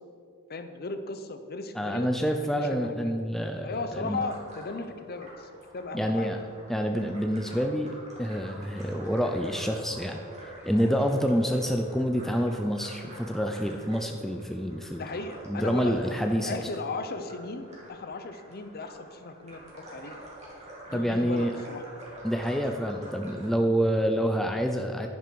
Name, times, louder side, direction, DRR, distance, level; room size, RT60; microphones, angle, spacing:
voice 1, 0.5-2.1 2.5-3.1 3.6-6.3 15.0-15.9 16.4-20.2 20.9-21.8, left 3 dB, 45° left, 8 dB, 0.8 m, -36 dB
voice 2, 1.7-4.2 5.9-6.4 6.7-10.2 10.6-15.0 15.5-16.6 20.9-21.5 22.2-25.1, equal, ahead, 4 dB, 0.5 m, -27 dB
sound 1, 3.6-23.5, right 1 dB, 30° right, 2.8 m, -47 dB
11.0 x 10.0 x 4.7 m, 2.4 s
head